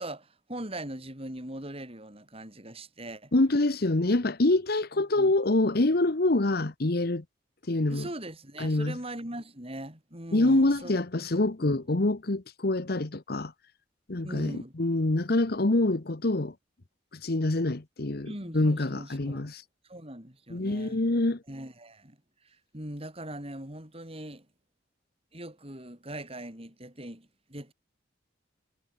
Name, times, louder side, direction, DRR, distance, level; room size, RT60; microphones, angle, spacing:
voice 1, 0.0-3.3 5.2-5.3 7.9-11.0 11.6-11.8 14.2-14.7 18.3-19.5 19.9-21.0 21.5-22.2 22.4-24.5 25.3-27.7, right 1 dB, 30° right, 7.8 m, -41 dB
voice 2, 3.3-7.2 7.7-8.1 8.6-9.0 10.3-13.5 14.1-16.5 17.2-19.6 20.5-21.4, left 2 dB, 55° left, 1.1 m, -26 dB
head